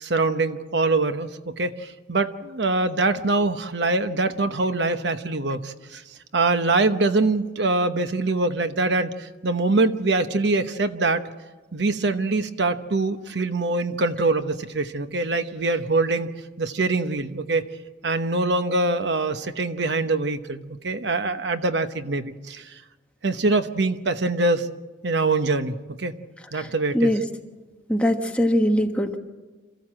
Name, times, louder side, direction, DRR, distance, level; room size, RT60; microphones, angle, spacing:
voice 1, 0.0-6.0 6.3-11.2 11.7-16.3 16.6-17.6 18.0-22.7 23.2-24.7 25.0-26.1 26.5-27.2, right 3 dB, 70° right, 9 dB, 1.0 m, -24 dB
voice 2, 27.9-29.2, equal, 5° left, 3 dB, 1.3 m, -21 dB
26.5 x 15.0 x 7.6 m, 1.2 s
head